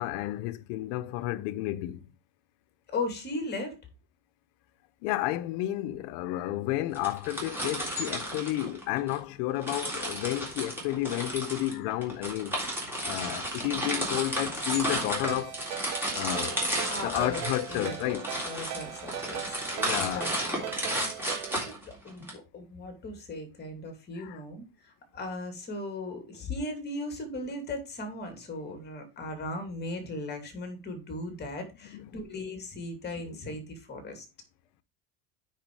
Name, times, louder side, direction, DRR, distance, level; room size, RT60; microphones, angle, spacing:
voice 1, 0.0-2.0 5.0-12.6 13.0-15.5 16.1-16.7 17.0-18.2 19.7-20.3 24.2-24.4 31.9-32.1 33.3-33.4, left 15 dB, 60° left, 0.8 m, -31 dB
voice 2, 2.9-3.8 16.9-17.4 17.7-18.0 18.4-19.6 20.0-34.3, left 2 dB, 20° left, 2.8 m, -38 dB
sound 1, 6.9-9.2 9.6-22.3, right 1 dB, 5° right, 3.4 m, -33 dB
Ringtone, 14.8-21.7, right 12 dB, 90° right, 1.9 m, -40 dB
9.4 x 4.6 x 4.7 m
cardioid pair, 150°, 45 cm